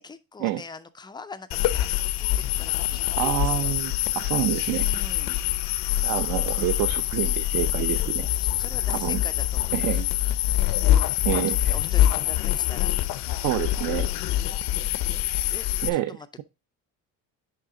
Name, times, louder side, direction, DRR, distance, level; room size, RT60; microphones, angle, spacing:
voice 1, 0.0-3.7 4.8-5.5 8.3-10.0 11.5-12.9 13.8-14.5 15.5-15.7 15.9-16.4, left 4 dB, 15° left, 0.3 m, -43 dB
sound 1, 1.5-15.9, left 13 dB, 75° left, 0.6 m, -25 dB
voice 2, 3.2-4.9 6.0-8.3 8.9-9.2 9.7-10.1 11.3-11.7 13.4-14.1 15.8-16.1, right 14 dB, 60° right, 0.6 m, -27 dB
10.5 x 3.6 x 3.7 m
cardioid pair, 170°, 35 cm